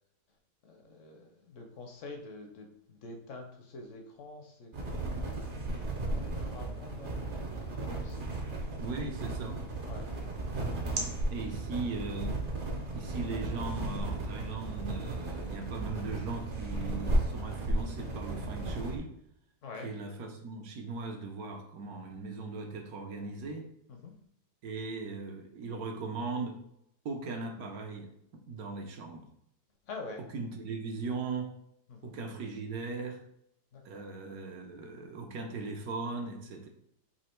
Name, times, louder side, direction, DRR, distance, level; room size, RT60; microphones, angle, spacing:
voice 1, 0.6-8.5 9.8-10.1 10.6-11.3 19.6-20.0 23.9-24.1 29.9-30.2 31.9-32.1 33.7-34.0, left 3 dB, 60° left, 3 dB, 0.9 m, -47 dB
sound 1, 4.7-19.0, right 2 dB, 45° right, 0.8 m, -35 dB
voice 2, 8.7-9.7 11.3-12.4 12.9-19.1 19.8-23.6 24.6-26.6 27.0-28.1 28.5-29.3 30.3-31.5 32.0-33.2 33.8-36.7, right 3 dB, 70° right, 3 dB, 1.1 m, -38 dB
4.1 x 2.8 x 4.4 m, 0.74 s
omnidirectional pair, 1.7 m